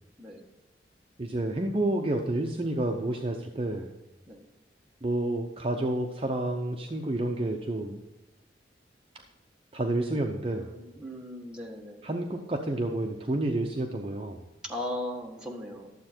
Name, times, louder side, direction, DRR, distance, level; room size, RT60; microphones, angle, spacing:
voice 1, 1.2-3.9 5.0-8.0 9.7-10.7 12.0-14.5, right 1 dB, 30° right, 2 dB, 0.7 m, -29 dB
voice 2, 10.5-12.0 14.6-15.9, left 1 dB, 5° right, -2 dB, 1.5 m, -38 dB
12.0 x 7.6 x 4.4 m, 1.0 s
head